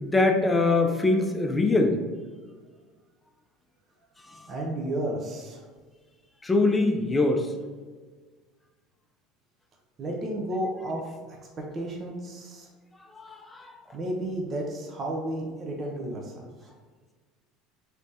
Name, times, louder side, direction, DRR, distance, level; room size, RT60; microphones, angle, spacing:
voice 1, 0.0-2.0 6.4-7.5 13.2-13.7, left 2 dB, 15° left, 4 dB, 0.5 m, -23 dB
voice 2, 4.5-5.6 10.0-12.7 13.9-16.7, right 1 dB, 40° right, 0 dB, 0.7 m, -33 dB
3.3 x 3.1 x 2.7 m, 1.4 s
hypercardioid pair, 85°, 0 cm